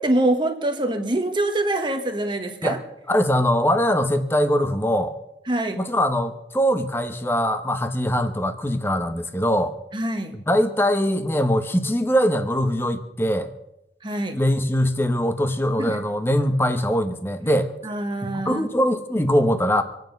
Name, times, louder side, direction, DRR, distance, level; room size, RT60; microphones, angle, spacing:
voice 1, 0.0-2.8 5.5-5.8 9.9-10.4 14.0-14.4 15.8-16.0 17.8-18.7, right 1 dB, 25° right, 5 dB, 1.5 m, -24 dB
voice 2, 3.1-5.1 5.8-9.7 10.3-13.5 14.3-17.7 18.2-19.8, equal, 15° left, 8 dB, 1.1 m, -22 dB
26.5 x 9.3 x 5.3 m, 0.84 s
head